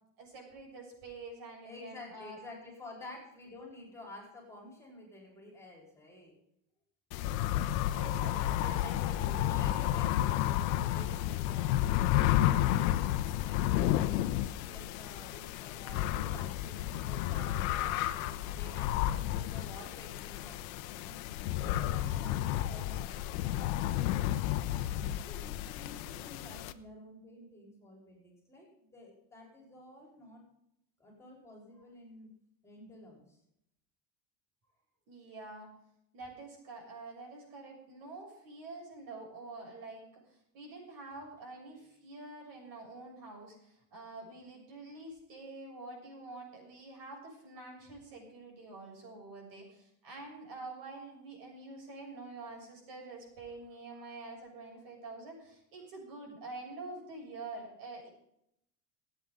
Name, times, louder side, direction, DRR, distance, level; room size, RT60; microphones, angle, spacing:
voice 1, 0.2-2.4 3.0-3.1 7.9-8.8 21.8-22.2 35.1-35.7 36.1-58.1, right 3 dB, 60° right, 0 dB, 7.2 m, -47 dB
voice 2, 1.6-6.4 8.5-12.0 13.1-21.2 21.6-24.2 24.7-30.4 31.0-32.3 32.6-33.4 41.7-41.8 53.9-54.1, left 1 dB, 5° left, -2 dB, 4.4 m, -51 dB
sound 1, 7.1-26.7, left 13 dB, 80° left, 0.9 m, -31 dB
27.0 x 9.0 x 3.9 m, 0.76 s
supercardioid pair, 140°, 41 cm